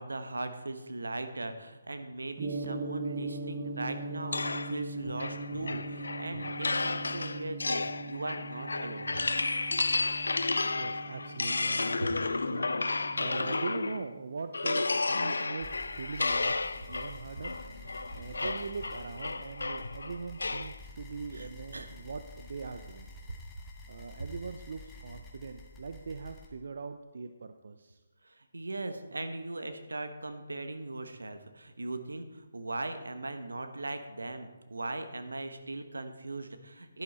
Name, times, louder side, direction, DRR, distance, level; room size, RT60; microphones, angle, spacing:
voice 1, 0.0-9.2 12.0-12.1 17.5-18.4 21.3-21.9 23.3-23.4 28.2-37.0, right 2 dB, 90° right, 8 dB, 1.3 m, -39 dB
Gong, 2.4-16.5, right 2 dB, 35° right, 1.1 m, -41 dB
sound 1, 4.3-14.1 14.5-20.8, left 3 dB, 85° left, 0.5 m, -32 dB
voice 2, 10.7-17.6 18.1-23.1 23.9-28.0, right 4 dB, 65° right, 8 dB, 0.6 m, -41 dB
sound 2, 15.6-26.5, left 3 dB, 15° left, 1.7 m, -50 dB
11.0 x 10.5 x 4.3 m, 1.2 s
hypercardioid pair, 155°, 0 cm